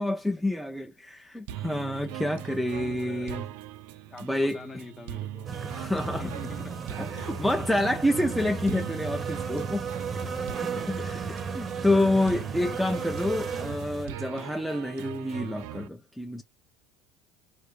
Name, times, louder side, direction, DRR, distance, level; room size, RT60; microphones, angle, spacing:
voice 1, 0.0-3.4 4.2-4.6 5.6-6.3 6.9-9.9 10.8-11.2 11.6-16.4, left 1 dB, ahead, 0.6 m, -28 dB
sound 1, 1.5-15.9, right 13 dB, 70° right, 0.4 m, -40 dB
voice 2, 1.9-2.2 3.0-3.5 4.1-5.5 5.8-7.8 10.2-10.5 10.8-11.4, left 4 dB, 25° left, 1.0 m, -46 dB
sound 2, 5.5-14.1, right 5 dB, 30° right, 0.8 m, -34 dB
4.1 x 2.6 x 3.2 m
hypercardioid pair, 80°, 0 cm